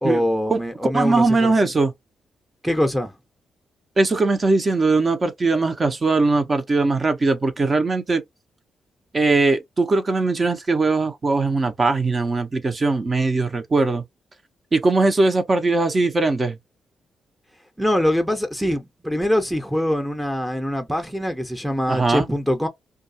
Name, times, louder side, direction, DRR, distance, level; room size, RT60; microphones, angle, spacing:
voice 1, 0.0-1.5 2.6-3.1 17.8-22.7, equal, 5° right, 0.7 m, -23 dB
voice 2, 0.9-1.9 4.0-8.2 9.1-14.0 14.7-16.6 21.9-22.3, right 3 dB, 40° right, 0.7 m, -20 dB
2.3 x 2.2 x 2.7 m
supercardioid pair, 50°, 0 cm